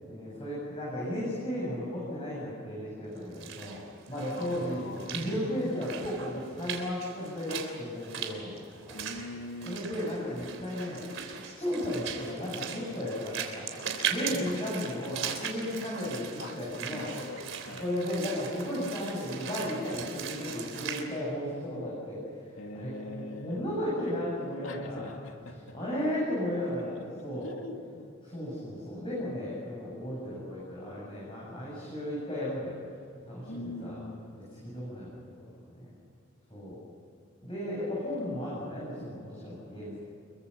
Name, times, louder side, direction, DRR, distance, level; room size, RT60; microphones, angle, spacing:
voice 1, 0.1-3.8 4.1-9.0 9.6-11.0 11.4-13.6 14.1-17.1 17.8-25.1 25.7-27.5 28.2-32.8 33.1-34.0 34.6-35.9 36.5-36.8 37.4-40.0, left 1 dB, 25° left, -6 dB, 7.9 m, -35 dB
Walk footsteps / Splash splatter, 3.2-21.0, right 7 dB, 75° right, 3.6 m, -39 dB
voice 2, 4.4-5.6 8.9-9.8 14.4-14.5 14.8-14.9 15.2-15.3 16.4-17.9 19.9-20.1 22.6-23.7 24.6-25.8 27.4-28.1 33.5-34.5, left 2 dB, 75° left, 3 dB, 2.9 m, -43 dB
27.0 x 23.0 x 6.9 m, 2.6 s
head